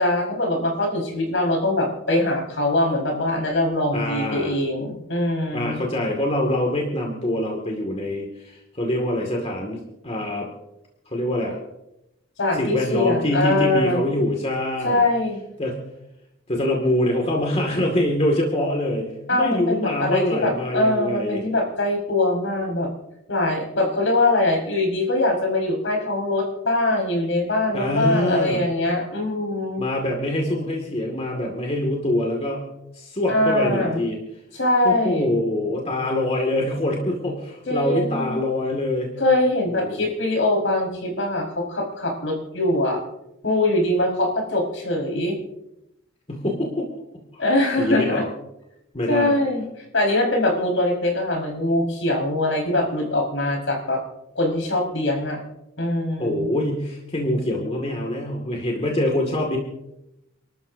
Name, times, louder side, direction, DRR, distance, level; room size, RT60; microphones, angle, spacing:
voice 1, 0.0-5.8 12.4-14.1 14.8-15.4 19.3-22.9 23.3-29.8 33.3-34.0 34.5-35.3 37.7-38.4 39.2-43.0 43.4-45.4 47.4-48.2 49.1-49.7 49.9-54.0 54.4-55.4 55.8-56.5, left 1 dB, 70° left, 1 dB, 5.0 m, -22 dB
voice 2, 3.9-4.5 5.5-10.5 11.1-11.6 12.5-15.0 15.6-15.8 16.5-21.4 27.7-28.6 29.8-32.6 32.9-34.2 34.8-39.1 39.6-40.1 46.3-46.9 47.3-47.4 47.8-48.3 48.9-49.4 56.2-59.6, left 1 dB, 30° left, 0 dB, 2.2 m, -24 dB
29.0 x 13.0 x 2.8 m, 0.87 s
head